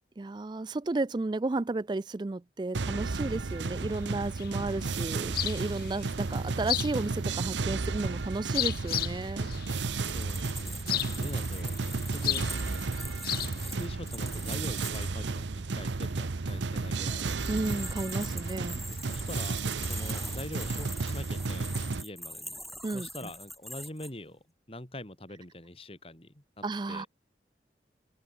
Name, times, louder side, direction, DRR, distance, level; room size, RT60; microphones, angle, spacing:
voice 1, 0.2-9.5 17.5-18.8 22.8-23.1 26.6-27.1, right 2 dB, 25° right, 0.4 m, -33 dB
sound 1, 2.7-22.0, right 3 dB, 85° right, 0.8 m, -33 dB
sound 2, 2.9-14.5, left 12 dB, 55° left, 1.4 m, -37 dB
sound 3, 9.8-15.1 16.9-24.1, equal, ahead, 4.4 m, -43 dB
voice 2, 9.9-12.5 13.6-17.3 18.9-22.6 22.9-27.1, left 1 dB, 30° left, 3.5 m, -44 dB
open air
head